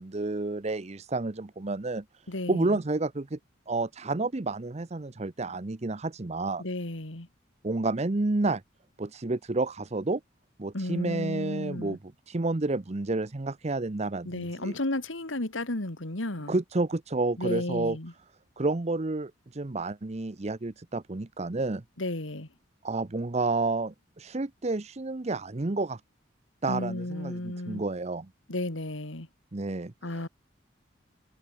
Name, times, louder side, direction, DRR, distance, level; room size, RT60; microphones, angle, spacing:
voice 1, 0.0-3.4 3.7-6.6 7.6-8.6 9.0-10.2 10.6-12.0 12.3-14.8 16.5-18.0 18.6-21.8 22.8-26.0 26.6-28.3 29.5-30.3, right 2 dB, 35° right, 0.7 m, -30 dB
voice 2, 2.3-2.7 6.6-7.3 10.7-12.0 14.3-16.5 17.4-18.1 22.0-22.5 26.7-27.8 28.5-29.3 30.0-30.3, left 1 dB, 90° left, 2.7 m, -33 dB
open air
head